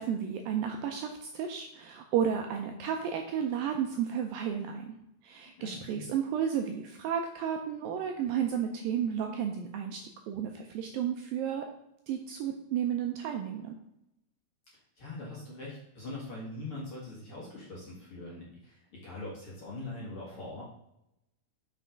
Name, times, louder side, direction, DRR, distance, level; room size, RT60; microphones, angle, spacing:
voice 1, 0.0-5.0 5.2-10.0 10.3-11.7 12.1-13.8, right 8 dB, 80° right, 4 dB, 2.1 m, -32 dB
voice 2, 5.6-6.1 15.0-20.6, left 2 dB, 45° left, -5 dB, 2.1 m, -42 dB
6.3 x 5.6 x 5.1 m, 0.83 s
omnidirectional pair, 4.6 m